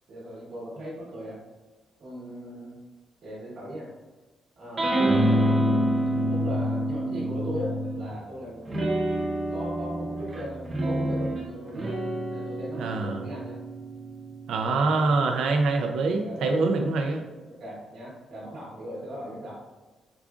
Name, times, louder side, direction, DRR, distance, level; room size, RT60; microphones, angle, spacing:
voice 1, 0.1-1.4 2.0-2.8 3.2-3.9 4.6-5.3 6.3-8.9 9.5-12.0 12.3-13.6 14.8-14.9 16.1-16.6 17.5-19.6, equal, 55° right, -7 dB, 1.2 m, -38 dB
sound 1, 4.8-8.1 8.7-15.5, right 1 dB, 30° right, 0.6 m, -27 dB
voice 2, 12.8-13.2 14.5-17.2, right 3 dB, 80° right, 4 dB, 0.4 m, -24 dB
4.8 x 2.4 x 2.4 m, 1.2 s
cardioid pair, 160°, 0 cm